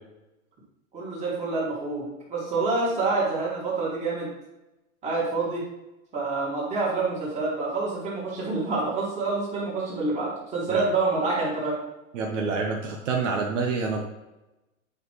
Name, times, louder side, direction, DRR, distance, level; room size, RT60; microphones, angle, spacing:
voice 1, 0.9-4.3 5.0-5.6 6.1-11.8, right 3 dB, 15° right, -6 dB, 2.6 m, -27 dB
voice 2, 12.1-14.0, right 4 dB, 60° right, 1 dB, 1.3 m, -27 dB
9.1 x 5.5 x 3.2 m, 0.99 s
supercardioid pair, 155°, 42 cm